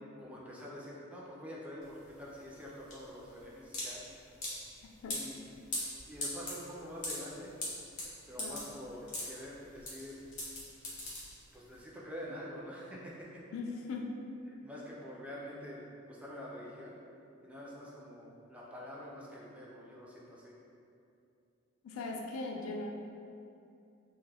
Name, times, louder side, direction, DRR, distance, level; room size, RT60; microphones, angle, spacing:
voice 1, 0.2-4.1 5.1-5.3 6.1-7.5 8.2-10.3 11.5-13.4 14.5-16.9 17.4-20.5, equal, 5° right, -5 dB, 0.3 m, -46 dB
sound 1, 1.8-11.7, left 1 dB, 40° left, 0.7 m, -41 dB
voice 2, 13.5-14.1 21.8-22.9, left 3 dB, 75° left, 1 dB, 0.3 m, -39 dB
2.2 x 2.1 x 3.3 m, 2.6 s
head